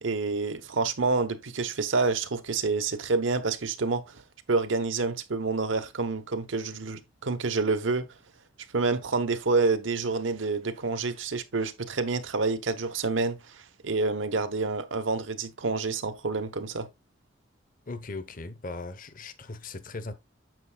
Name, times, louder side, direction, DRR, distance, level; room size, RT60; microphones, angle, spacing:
voice 1, 0.0-4.2 4.5-8.0 8.7-16.9, right 4 dB, 85° right, 1.0 m, -28 dB
voice 2, 17.9-20.1, left 3 dB, 45° left, 0.9 m, -38 dB
9.2 x 7.1 x 2.3 m
head